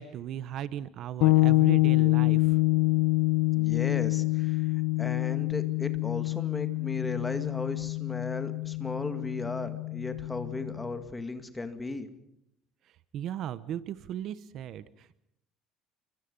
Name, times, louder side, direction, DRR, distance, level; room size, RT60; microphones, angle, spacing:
voice 1, 0.0-2.6 13.1-15.2, right 10 dB, 45° right, 16 dB, 1.0 m, -37 dB
sound 1, 1.2-10.9, left 22 dB, 75° left, 1.2 m, -26 dB
voice 2, 3.6-4.7 5.0-12.1, left 2 dB, 10° left, 10 dB, 2.1 m, -36 dB
29.5 x 24.5 x 5.4 m, 0.74 s
cardioid pair, 165°, 0 cm